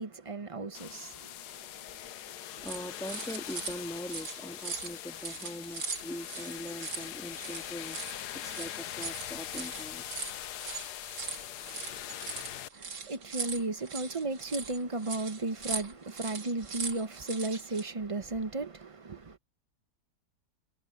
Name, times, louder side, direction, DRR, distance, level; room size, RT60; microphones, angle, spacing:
voice 1, 0.0-1.4 2.6-2.7 12.7-19.4, right 2 dB, 30° right, 0.6 m, -35 dB
sound 1, 0.7-12.7, left 12 dB, 75° left, 1.3 m, -42 dB
voice 2, 2.6-10.2, equal, ahead, 2.6 m, -42 dB
sound 2, 2.6-17.8, right 5 dB, 90° right, 2.9 m, -41 dB
omnidirectional pair, 1.8 m